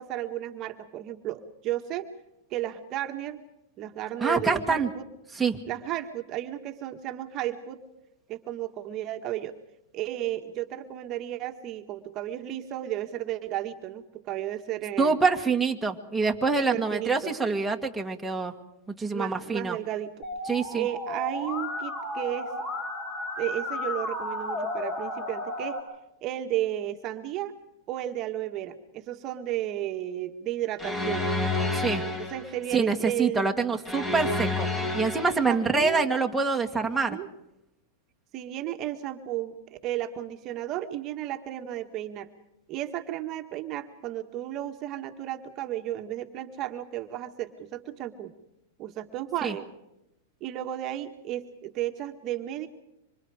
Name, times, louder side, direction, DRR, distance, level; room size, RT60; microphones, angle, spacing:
voice 1, 0.0-2.1 2.5-3.4 3.8-5.1 5.7-7.8 8.3-9.6 9.9-15.2 16.7-17.3 19.1-20.3 20.7-22.5 23.4-25.8 26.2-27.5 27.9-31.3 32.2-33.5 35.5-36.0 36.8-37.3 38.3-42.3 42.7-48.3 48.8-49.7 50.4-52.7, right 13 dB, 40° right, 5 dB, 1.6 m, -33 dB
voice 2, 4.2-4.9 5.3-5.6 15.0-18.5 19.0-19.8 20.5-20.9 31.7-32.0 32.7-34.7 34.9-37.2 49.4-49.5, right 4 dB, 5° right, 1 dB, 2.0 m, -25 dB
Musical instrument, 20.2-25.8, left 2 dB, 40° left, 6.1 m, -33 dB
sound 1, 30.8-32.5 33.9-35.6, left 2 dB, 20° left, 5.2 m, -29 dB
26.0 x 25.5 x 4.9 m, 0.86 s
hypercardioid pair, 120°, 0 cm